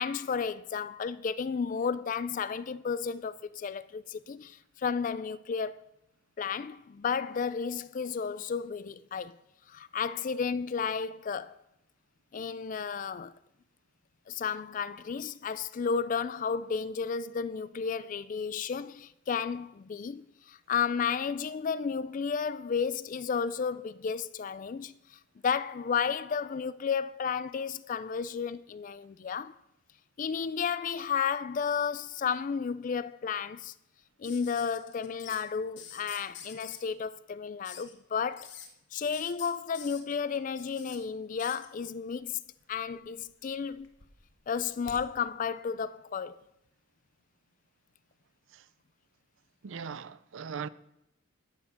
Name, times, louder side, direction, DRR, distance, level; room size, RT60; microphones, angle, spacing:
voice 1, 0.0-5.9 6.4-9.4 9.7-11.6 12.3-13.3 14.3-29.6 30.2-33.7 34.2-38.5 38.9-42.4 42.7-43.9 44.5-46.4, left 6 dB, 40° left, 0.3 m, -33 dB
sound 1, 34.2-35.4 35.8-36.8 37.6-37.9 38.3-38.7 39.1-41.0 41.4-41.7 42.7-43.3 43.6-45.0 46.4-46.5, left 8 dB, 60° left, 1.1 m, -47 dB
voice 2, 49.6-50.7, right 6 dB, 65° right, 0.4 m, -39 dB
12.5 x 6.6 x 5.7 m
head